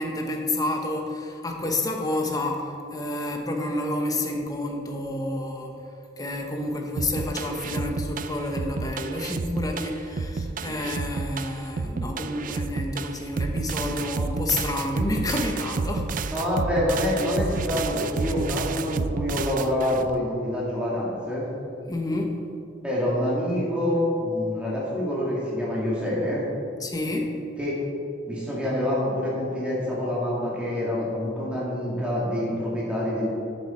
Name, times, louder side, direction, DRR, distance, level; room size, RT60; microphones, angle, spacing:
voice 1, 0.0-5.8 6.2-16.1 21.9-22.4 26.8-27.3, left 1 dB, 20° left, 2 dB, 1.2 m, -29 dB
sound 1, 7.0-20.2, right 4 dB, 50° right, 0.4 m, -30 dB
voice 2, 16.3-21.5 22.8-26.4 27.6-27.8 28.3-33.3, left 1 dB, 5° right, -7 dB, 2.3 m, -26 dB
12.0 x 8.3 x 4.5 m, 2.5 s
head